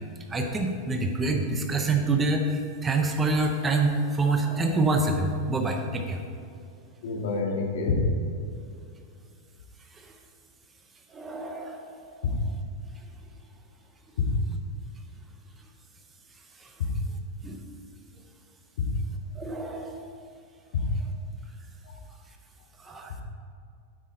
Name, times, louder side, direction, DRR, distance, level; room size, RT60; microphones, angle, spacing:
voice 1, 0.3-6.2 11.1-12.0 17.4-17.6 19.4-20.1 22.8-23.2, right 2 dB, 15° right, 4 dB, 0.6 m, -26 dB
voice 2, 7.0-8.1 12.2-12.3 14.2-14.3 16.8-16.9 18.8-18.9 20.7-20.9 21.9-22.0 22.9-23.2, left 4 dB, 70° left, 0 dB, 2.0 m, -27 dB
9.3 x 8.2 x 3.9 m, 2.4 s
supercardioid pair, 165°, 0 cm